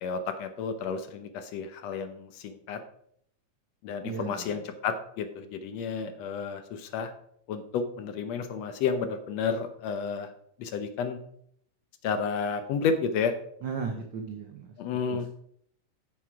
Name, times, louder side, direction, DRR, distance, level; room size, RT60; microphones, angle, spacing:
voice 1, 0.0-2.8 3.8-7.1 7.5-10.3 10.6-11.2 12.0-13.3 14.8-15.3, left 5 dB, 70° left, 9 dB, 1.8 m, -31 dB
voice 2, 4.0-4.4 13.6-14.7 15.1-15.3, right 5 dB, 80° right, 4 dB, 1.0 m, -35 dB
9.5 x 6.6 x 4.7 m, 0.68 s
omnidirectional pair, 3.4 m